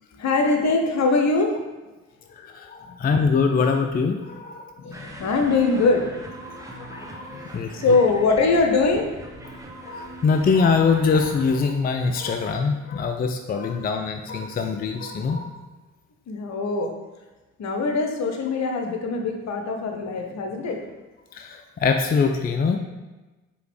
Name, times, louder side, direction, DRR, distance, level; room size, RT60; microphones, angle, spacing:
voice 1, 0.1-1.6 2.9-3.0 4.8-6.4 7.3-7.4 7.7-9.1 16.3-16.9 17.6-20.8, left 3 dB, 50° left, 3 dB, 0.8 m, -22 dB
voice 2, 2.3-4.7 6.5-7.3 7.5-7.8 9.8-15.6 21.3-22.8, left 5 dB, 25° left, 5 dB, 0.4 m, -23 dB
sound 1, 4.9-11.6, right 1 dB, 10° right, 0.7 m, -41 dB
4.9 x 3.0 x 3.2 m, 1.1 s
hypercardioid pair, 50°, 34 cm